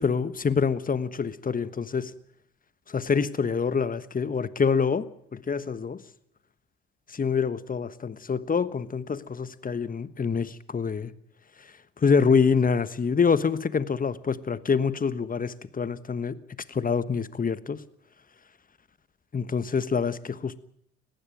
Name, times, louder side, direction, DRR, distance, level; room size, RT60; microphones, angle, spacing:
voice 1, 0.0-2.1 2.9-5.1 5.3-6.0 7.1-11.1 12.0-16.4 16.7-17.8 19.3-20.6, left 5 dB, 25° left, 15 dB, 1.3 m, -26 dB
20.0 x 15.0 x 9.2 m, 0.68 s
hypercardioid pair, 60°, 31 cm